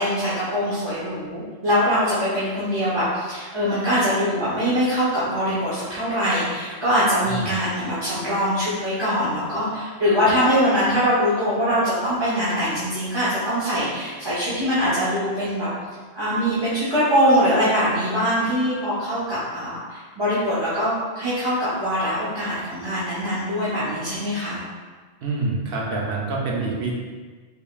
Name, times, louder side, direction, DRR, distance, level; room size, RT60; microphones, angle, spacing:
voice 1, 0.0-15.7 16.1-24.6, equal, 25° right, -11 dB, 0.7 m, -23 dB
voice 2, 7.2-7.6 25.2-27.0, right 3 dB, 60° right, -2 dB, 0.8 m, -26 dB
3.6 x 3.4 x 2.3 m, 1.4 s
omnidirectional pair, 1.2 m